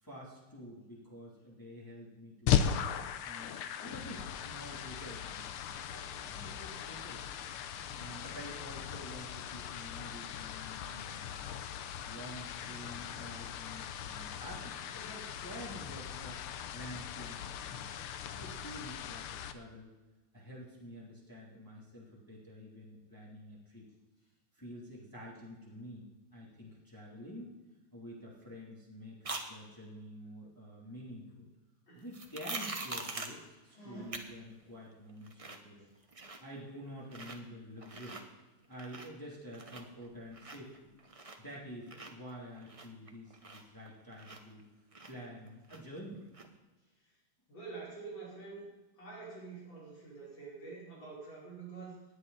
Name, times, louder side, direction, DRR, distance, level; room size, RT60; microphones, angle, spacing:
voice 1, 0.0-2.8 3.3-7.2 8.0-11.4 12.1-16.4 16.7-17.9 18.3-19.9 20.3-23.9 24.5-27.5 27.9-31.5 31.9-35.9 36.4-38.2 38.7-40.9 41.4-44.6 45.1-46.2, equal, 10° left, -5 dB, 2.6 m, -49 dB
sound 1, 2.5-19.5, left 9 dB, 85° left, 1.6 m, -38 dB
sound 2, 29.2-29.5 32.1-33.4 34.1-34.2 34.6-34.7 35.1-35.7 36.0-36.6 37.0-37.4 37.8-38.2 38.6-39.3 39.5-41.6 41.9-44.6 44.9-46.0 46.3-46.5, right 3 dB, 35° right, 0.5 m, -43 dB
voice 2, 33.7-34.2 47.5-48.7 49.0-52.0, right 4 dB, 60° left, -6 dB, 6.0 m, -47 dB
18.5 x 9.8 x 4.1 m, 1.2 s
omnidirectional pair, 2.4 m